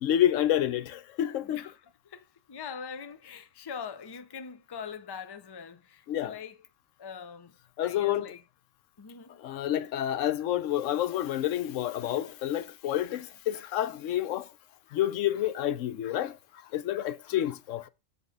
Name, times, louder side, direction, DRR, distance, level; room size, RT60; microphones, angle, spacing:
voice 1, 0.0-1.6 6.1-6.3 7.8-8.3 9.4-14.5 14.9-16.4 16.7-17.9, left 12 dB, 90° left, 1.0 m, -29 dB
voice 2, 1.4-6.7 7.0-7.6 7.8-8.4 9.0-9.4 17.3-17.5, left 6 dB, 30° left, 0.4 m, -43 dB
8.1 x 3.7 x 5.1 m
omnidirectional pair, 1.3 m